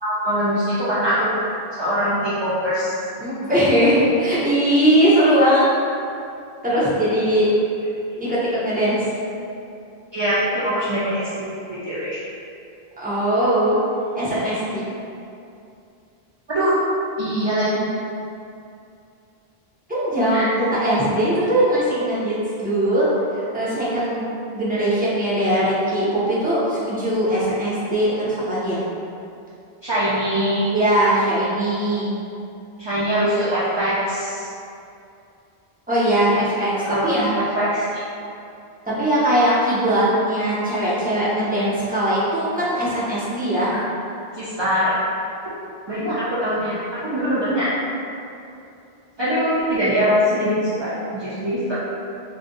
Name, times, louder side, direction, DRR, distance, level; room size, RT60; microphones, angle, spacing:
voice 1, 0.0-1.3 1.8-2.9 10.1-12.2 16.5-16.7 17.2-17.9 20.3-20.5 29.8-30.7 32.8-34.5 36.8-37.8 43.7-43.8 44.3-44.9 45.9-47.7 49.2-51.8, equal, 45° right, -11 dB, 0.3 m, -22 dB
voice 2, 3.2-5.6 6.6-7.5 8.1-8.3 8.6-9.0 13.0-13.8 14.1-14.8 19.9-23.1 23.4-24.2 24.5-28.8 30.7-32.1 35.9-37.3 38.9-43.7, right 1 dB, 10° right, -10 dB, 0.6 m, -20 dB
2.5 x 2.2 x 3.7 m, 2.6 s
omnidirectional pair, 1.0 m